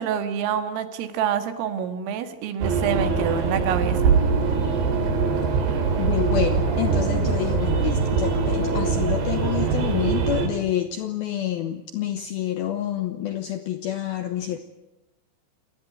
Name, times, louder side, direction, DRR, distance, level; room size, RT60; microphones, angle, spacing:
voice 1, 0.0-4.2, right 8 dB, 80° right, 9 dB, 4.4 m, -27 dB
sound 1, 2.6-10.5, right 5 dB, 55° right, 4.8 m, -22 dB
voice 2, 6.0-14.6, left 11 dB, 80° left, 9 dB, 2.2 m, -28 dB
28.5 x 18.5 x 9.3 m, 1.0 s
omnidirectional pair, 5.8 m